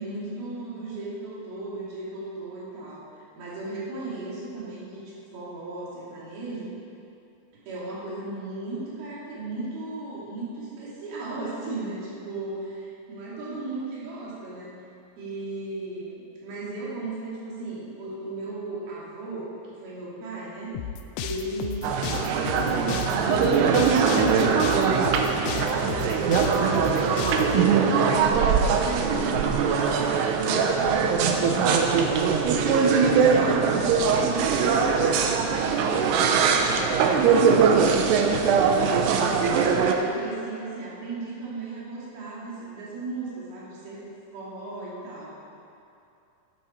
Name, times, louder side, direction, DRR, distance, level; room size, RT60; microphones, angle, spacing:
voice 1, 0.0-5.0 5.3-6.7 7.7-14.7 15.2-19.5 19.8-20.7 21.2-26.9 27.4-32.0 32.4-35.9 36.4-37.4 38.0-38.9 39.8-44.0 44.3-45.3, right 2 dB, 60° right, -8 dB, 4.4 m, -36 dB
sound 1, 20.7-27.6, left 8 dB, 80° left, 2.6 m, -33 dB
sound 2, 21.8-39.9, right 6 dB, 80° right, 2.7 m, -21 dB
12.0 x 11.0 x 4.4 m, 2.6 s
omnidirectional pair, 5.1 m